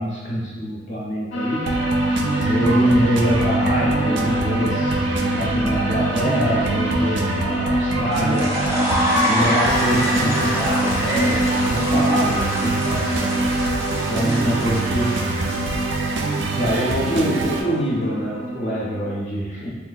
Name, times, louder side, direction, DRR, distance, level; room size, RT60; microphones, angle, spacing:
voice 1, 0.0-1.8 2.4-5.0 5.3-8.6 9.2-12.8 13.9-15.3 15.8-15.9 16.5-19.7, equal, 45° left, -6 dB, 0.6 m, -25 dB
sound 1, 1.3-19.0, equal, 90° left, 0.5 m, -25 dB
sound 2, 1.6-17.6, right 4 dB, 80° right, 0.3 m, -25 dB
sound 3, 8.1-17.4, equal, 15° right, 0.5 m, -27 dB
4.3 x 2.5 x 2.3 m, 1.4 s
head